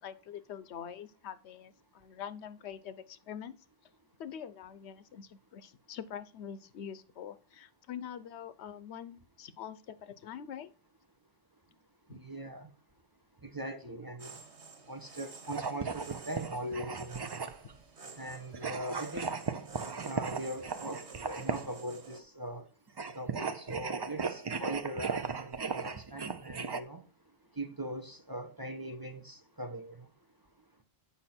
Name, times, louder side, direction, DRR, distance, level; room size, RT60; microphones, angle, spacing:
voice 1, 0.0-3.6 4.2-10.7 12.1-12.2, left 8 dB, 80° left, 0.9 m, -44 dB
voice 2, 12.1-12.7 13.4-14.4 14.9-17.3 18.2-19.4 20.0-22.7 23.1-27.0 27.6-30.1, right 1 dB, 20° right, 0.8 m, -41 dB
sound 1, 14.2-22.2, right 4 dB, 80° right, 1.7 m, -50 dB
sound 2, 15.5-17.8 18.5-21.8 22.9-26.8, right 5 dB, 40° right, 0.3 m, -37 dB
8.2 x 5.5 x 4.3 m
omnidirectional pair, 1.1 m